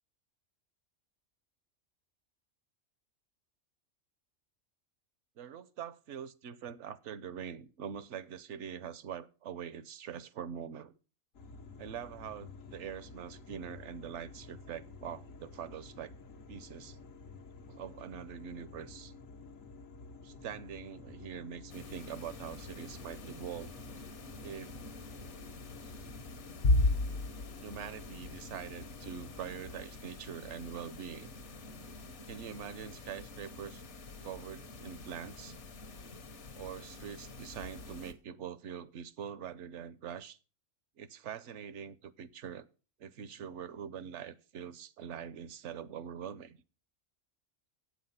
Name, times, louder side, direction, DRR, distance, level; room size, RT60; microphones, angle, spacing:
voice 1, 5.4-10.9 11.8-16.1 16.5-17.0 17.7-19.1 20.2-23.7 24.4-24.7 25.8-25.9 27.6-31.3 32.3-33.8 34.2-35.6 36.5-40.4 41.0-42.7 43.0-46.6, right 8 dB, 70° right, 1.0 m, -44 dB
sound 1, 11.3-29.9, left 3 dB, 85° left, 1.6 m, -51 dB
sound 2, 21.7-38.1, left 2 dB, 65° left, 1.4 m, -38 dB
8.6 x 8.3 x 5.5 m
omnidirectional pair, 1.3 m